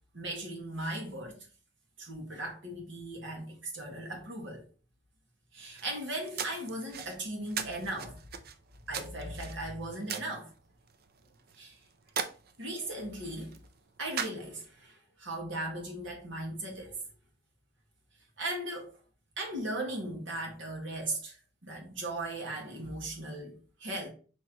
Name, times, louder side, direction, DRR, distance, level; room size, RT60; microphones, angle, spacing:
voice 1, 0.1-1.5 2.0-4.6 5.5-8.2 8.9-10.5 11.5-11.8 12.6-13.6 14.0-17.0 18.4-18.9 19.4-21.4 21.6-24.1, right 1 dB, 70° right, 1.4 m, -38 dB
sound 1, 5.6-14.9, right 7 dB, 55° right, 0.5 m, -41 dB
4.5 x 3.0 x 3.7 m
head